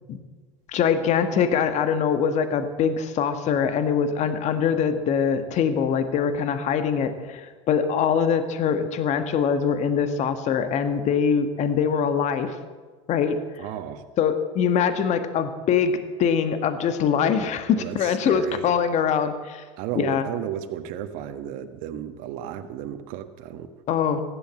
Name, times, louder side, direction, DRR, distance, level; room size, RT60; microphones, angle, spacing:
voice 1, 0.7-12.6 13.1-13.4 14.2-19.6 19.9-20.2 23.9-24.2, left 7 dB, 45° left, 9 dB, 1.6 m, -23 dB
voice 2, 13.6-14.0 17.7-18.7 19.8-23.7, right 10 dB, 60° right, 8 dB, 1.4 m, -33 dB
15.5 x 12.0 x 7.6 m, 1.4 s
hypercardioid pair, 85°, 16 cm